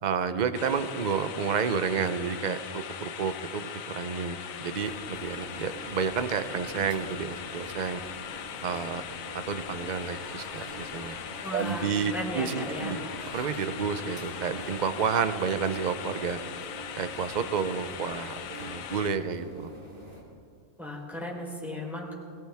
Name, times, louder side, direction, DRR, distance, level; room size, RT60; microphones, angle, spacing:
voice 1, 0.0-8.0 8.6-9.0 9.5-11.2 11.5-13.0 13.3-16.4 17.0-18.3 18.6-19.7, right 6 dB, 40° right, 10 dB, 0.7 m, -30 dB
sound 1, 0.5-19.1, left 8 dB, 85° left, 1.2 m, -40 dB
sound 2, 4.6-20.2, right 1 dB, 85° right, 3.8 m, -46 dB
sound 3, 10.0-14.9, left 2 dB, 55° left, 2.4 m, -48 dB
voice 2, 11.4-13.0 20.8-22.1, equal, ahead, -4 dB, 4.0 m, -36 dB
21.5 x 18.5 x 3.5 m, 2.2 s
omnidirectional pair, 1.4 m